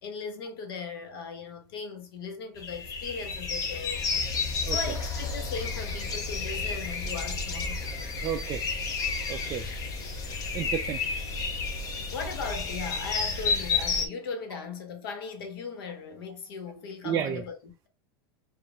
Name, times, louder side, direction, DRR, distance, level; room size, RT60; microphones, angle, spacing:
voice 1, 0.0-4.3 4.7-7.8 11.8-11.9 12.1-17.9, left 5 dB, 75° left, 1.2 m, -38 dB
sound 1, 2.6-14.1, left 4 dB, 30° left, 0.7 m, -31 dB
voice 2, 8.2-8.6 9.3-9.7 10.5-11.0 17.0-17.4, right 9 dB, 25° right, 0.4 m, -31 dB
4.0 x 2.5 x 3.5 m
supercardioid pair, 150°, 12 cm